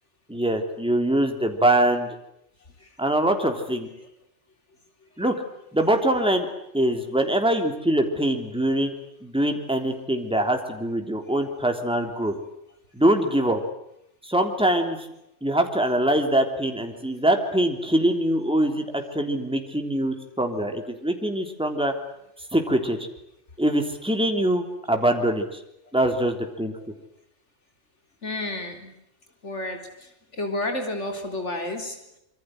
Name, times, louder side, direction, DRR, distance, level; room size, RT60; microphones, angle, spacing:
voice 1, 0.3-2.1 3.0-3.9 5.2-5.4 5.7-6.5 6.7-8.9 9.2-12.3 12.9-13.6 14.2-15.0 15.4-21.9 22.5-23.0 23.6-25.6 25.9-26.7, right 1 dB, 5° right, 4 dB, 3.4 m, -23 dB
voice 2, 2.8-3.1 5.2-5.4 6.1-6.4 15.5-15.6 22.7-22.8 28.2-29.0 29.4-32.2, left 1 dB, 80° left, 5 dB, 4.2 m, -32 dB
26.0 x 25.0 x 7.9 m, 0.81 s
omnidirectional pair, 1.2 m